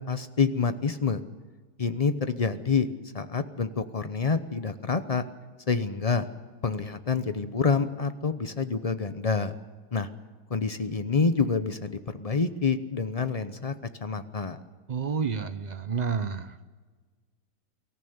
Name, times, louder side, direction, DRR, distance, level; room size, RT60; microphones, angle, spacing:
voice 1, 0.1-1.2 1.8-2.9 3.1-5.2 5.7-6.2 6.6-9.5 9.9-10.1 10.5-13.7 14.0-14.6, left 5 dB, 40° left, 10 dB, 0.5 m, -27 dB
voice 2, 14.9-16.7, right 6 dB, 75° right, 10 dB, 0.4 m, -30 dB
23.5 x 14.5 x 8.0 m, 1.4 s
omnidirectional pair, 1.9 m